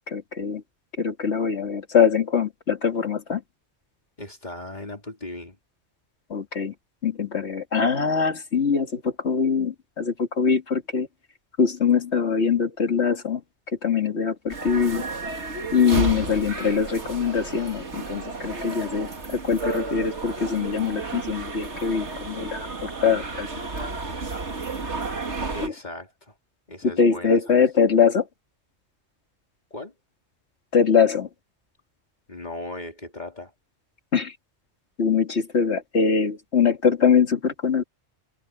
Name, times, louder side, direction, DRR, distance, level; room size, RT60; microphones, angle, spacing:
voice 1, 0.1-0.6 1.0-3.4 6.3-6.7 7.0-11.1 11.6-13.4 13.8-15.0 15.7-23.5 23.8-23.9 25.6-25.7 27.0-28.3 30.7-31.3 34.1-34.3 35.0-37.8, left 6 dB, 70° left, 2.3 m, -23 dB
voice 2, 4.2-5.6 25.5-26.3 26.7-27.7 29.7-29.9 32.3-33.5, left 1 dB, 40° left, 3.5 m, -37 dB
sound 1, 14.5-25.7, right 3 dB, 75° right, 2.4 m, -32 dB
omnidirectional pair, 1.2 m